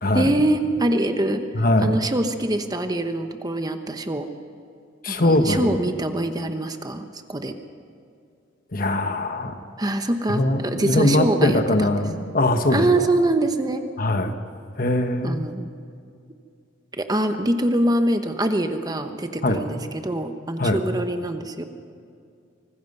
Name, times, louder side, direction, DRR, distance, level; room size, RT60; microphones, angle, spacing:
voice 1, 0.1-1.4 1.8-4.3 5.1-7.5 9.8-12.0 12.7-13.8 15.2-15.7 16.9-21.6, right 1 dB, 20° right, 7 dB, 1.0 m, -24 dB
voice 2, 1.5-2.0 5.0-5.7 8.7-9.5 10.3-12.8 14.0-14.3 14.8-15.4 19.4-19.6 20.6-20.8, left 1 dB, 50° left, 7 dB, 1.4 m, -21 dB
24.5 x 20.0 x 5.5 m, 2.4 s
head